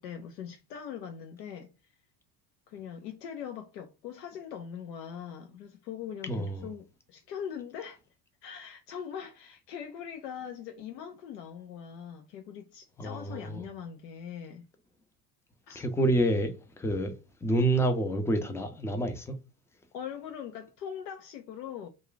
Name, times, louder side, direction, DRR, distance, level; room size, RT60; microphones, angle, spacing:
voice 1, 0.0-2.0 2.7-8.0 8.4-14.7 15.7-15.8 19.9-21.9, left 8 dB, 75° left, 0.6 m, -41 dB
voice 2, 6.3-6.7 13.0-13.6 15.8-17.1 17.4-19.4, right 1 dB, 5° left, 0.4 m, -28 dB
2.3 x 2.3 x 3.8 m
hypercardioid pair, 70°, 49 cm